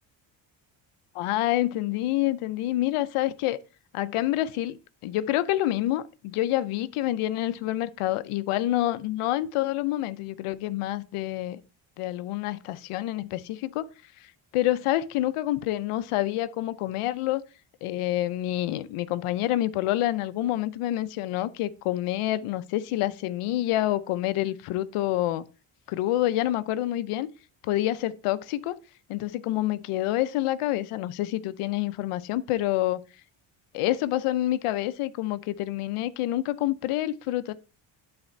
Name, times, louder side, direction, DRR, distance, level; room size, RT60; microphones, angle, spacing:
voice 1, 1.1-3.6 3.9-4.8 5.0-11.6 12.0-13.9 14.5-17.4 17.8-25.4 25.9-27.3 27.6-28.8 29.1-33.0 33.7-37.5, left 14 dB, 85° left, 0.7 m, -27 dB
8.9 x 4.3 x 4.3 m
cardioid pair, 95°, 50 cm